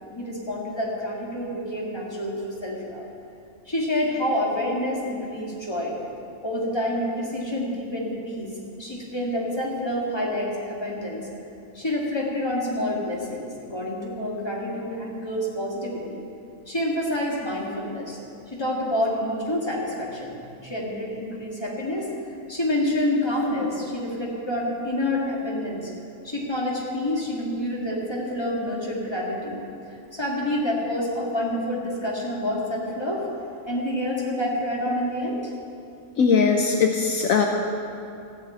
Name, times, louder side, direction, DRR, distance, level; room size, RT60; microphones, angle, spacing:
voice 1, 0.1-3.0 3.7-6.0 6.4-8.5 8.8-11.3 11.7-16.2 16.7-18.2 18.5-22.1 22.5-25.9 26.2-29.7 30.1-33.2 33.6-35.4, left 1 dB, 15° left, -4 dB, 2.2 m, -28 dB
voice 2, 36.2-37.5, left 5 dB, 70° left, 3 dB, 1.2 m, -20 dB
14.0 x 6.9 x 8.6 m, 2.6 s
omnidirectional pair, 1.5 m